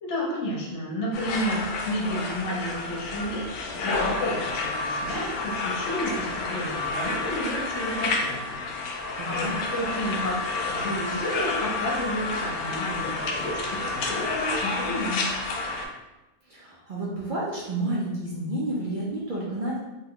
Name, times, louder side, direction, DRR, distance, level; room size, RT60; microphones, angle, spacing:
voice 1, 0.0-3.4 3.7-10.3 10.7-15.3, equal, 55° left, -3 dB, 1.0 m, -31 dB
sound 1, 1.1-15.9, left 3 dB, 85° left, 1.1 m, -30 dB
voice 2, 9.2-9.5 16.5-19.8, right 1 dB, 75° right, -6 dB, 0.4 m, -30 dB
3.0 x 2.3 x 3.6 m, 1.0 s
omnidirectional pair, 1.6 m